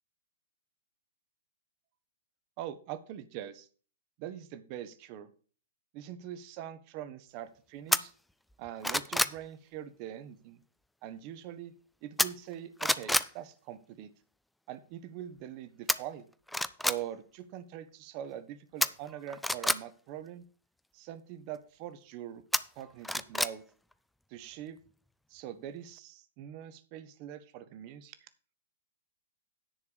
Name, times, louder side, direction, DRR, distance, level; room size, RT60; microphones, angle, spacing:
voice 1, 2.6-3.7 4.2-5.3 5.9-8.1 8.6-10.6 11.0-11.7 12.0-14.1 14.7-16.3 16.8-20.4 20.9-22.4 22.7-23.6 24.3-24.8 25.3-28.1, right 11 dB, 40° right, 12 dB, 1.0 m, -43 dB
sound 1, 7.9-8.0 8.5-9.4 12.2-12.5 12.8-13.3 15.9-16.0 16.5-17.0 18.8-19.8 22.5-23.5 23.9-24.0, left 1 dB, 5° left, 0.4 m, -28 dB
10.0 x 4.7 x 6.8 m, 0.40 s
figure-of-eight pair, 110°, 0 cm